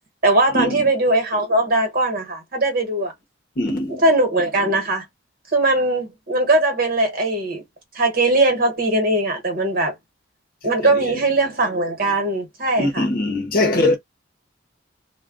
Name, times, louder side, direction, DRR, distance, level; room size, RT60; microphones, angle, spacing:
voice 1, 0.2-3.1 3.9-5.0 5.5-7.6 7.9-9.9 10.6-13.0, right 2 dB, 50° right, 1.2 m, -20 dB
voice 2, 3.6-4.0 10.9-11.2 12.8-14.0, left 2 dB, 50° left, 0.8 m, -21 dB
2.2 x 2.2 x 3.6 m
head